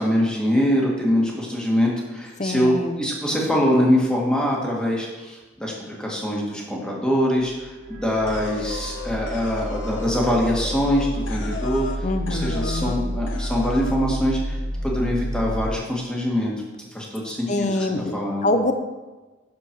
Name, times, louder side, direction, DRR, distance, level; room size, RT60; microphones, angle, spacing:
voice 1, 0.0-16.5 16.9-17.8 18.1-18.5, equal, 5° left, -3 dB, 1.7 m, -23 dB
voice 2, 2.4-3.0 12.0-13.0 17.5-18.7, left 2 dB, 40° left, 7 dB, 0.7 m, -25 dB
sound 1, 7.4-15.8, equal, 90° right, 2.2 m, -30 dB
sound 2, 8.3-12.0 12.3-13.0 13.3-14.0, left 4 dB, 80° left, 1.1 m, -36 dB
7.4 x 6.9 x 6.0 m, 1.2 s
head